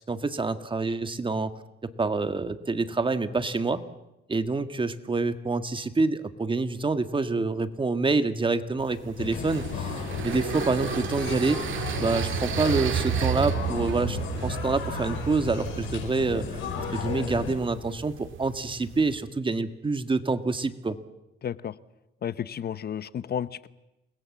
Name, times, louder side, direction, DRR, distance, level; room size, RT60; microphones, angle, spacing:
voice 1, 0.1-1.5 2.0-3.8 4.3-16.6 16.9-21.0, right 3 dB, 25° right, 10 dB, 1.7 m, -27 dB
sound 1, 8.8-19.2, right 10 dB, 80° right, 1.7 m, -33 dB
sound 2, 9.2-17.5, left 7 dB, 85° left, 5.8 m, -34 dB
voice 2, 21.4-21.7 22.2-23.7, left 9 dB, 55° left, 16 dB, 0.9 m, -32 dB
28.5 x 21.0 x 7.4 m, 0.94 s
cardioid pair, 90°, 20 cm